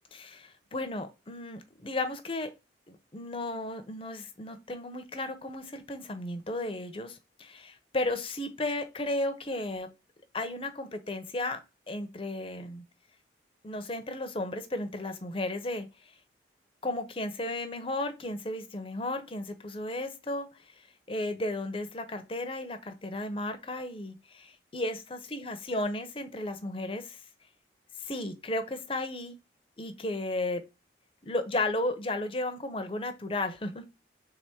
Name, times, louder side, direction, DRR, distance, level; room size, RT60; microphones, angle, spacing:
voice 1, 0.1-2.5 2.9-9.9 10.3-11.6 11.9-12.8 13.6-15.9 16.8-20.5 21.1-27.2 28.0-29.4 29.8-30.6 31.2-33.8, left 2 dB, 30° left, 0.6 m, -34 dB
3.5 x 3.5 x 4.3 m
head